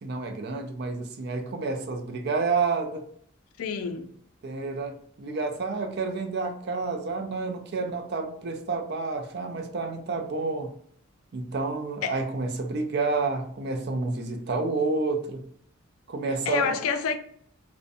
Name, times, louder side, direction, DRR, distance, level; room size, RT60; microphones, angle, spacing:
voice 1, 0.0-3.1 4.4-10.7 11.3-15.4 16.1-16.8, right 3 dB, 50° right, 0.4 m, -29 dB
voice 2, 3.6-4.1 12.0-12.1 16.5-17.1, left 6 dB, 85° left, 0.4 m, -28 dB
2.5 x 2.1 x 2.5 m
head